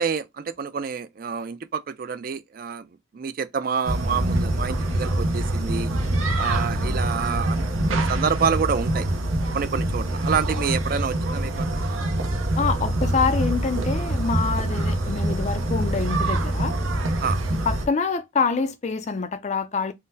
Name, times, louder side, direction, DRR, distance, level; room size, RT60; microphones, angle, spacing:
voice 1, 0.0-2.9 3.1-5.9 6.4-7.6 7.9-9.1 9.5-11.7 17.2-17.4, right 6 dB, 45° right, 0.3 m, -27 dB
sound 1, 3.8-17.9, right 1 dB, 85° right, 0.7 m, -25 dB
voice 2, 12.6-16.7 17.5-19.9, left 5 dB, 35° left, 0.3 m, -26 dB
3.7 x 2.0 x 2.6 m
head